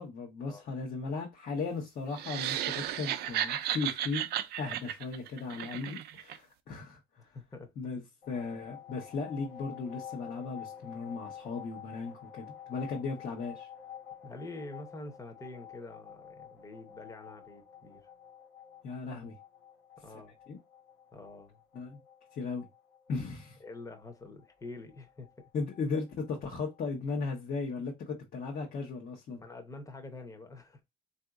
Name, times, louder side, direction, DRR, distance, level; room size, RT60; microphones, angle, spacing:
voice 1, 0.0-4.3 4.6-7.0 7.8-13.7 18.8-19.3 20.5-20.6 21.7-22.0 22.3-22.6 23.1-23.6 25.5-29.4, left 4 dB, 55° left, 1.0 m, -36 dB
sound 1, 2.1-6.4, right 11 dB, 70° right, 0.4 m, -34 dB
voice 2, 7.2-7.7 14.2-18.0 20.0-20.3 21.1-21.6 23.6-25.3 29.4-30.8, left 2 dB, 20° left, 0.8 m, -46 dB
sound 2, 8.2-26.8, left 9 dB, 75° left, 1.3 m, -50 dB
3.7 x 2.7 x 2.3 m
cardioid pair, 110°, 17 cm